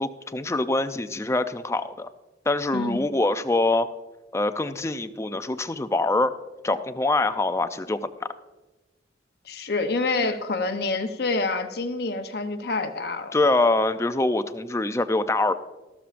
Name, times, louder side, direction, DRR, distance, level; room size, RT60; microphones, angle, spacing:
voice 1, 0.0-2.1 2.5-3.9 4.3-6.3 6.6-8.1 10.2-10.3 13.3-15.5, left 2 dB, 15° left, 10 dB, 0.4 m, -24 dB
voice 2, 9.5-13.4, left 3 dB, 60° left, 6 dB, 0.8 m, -27 dB
13.5 x 12.5 x 2.5 m, 1.2 s
head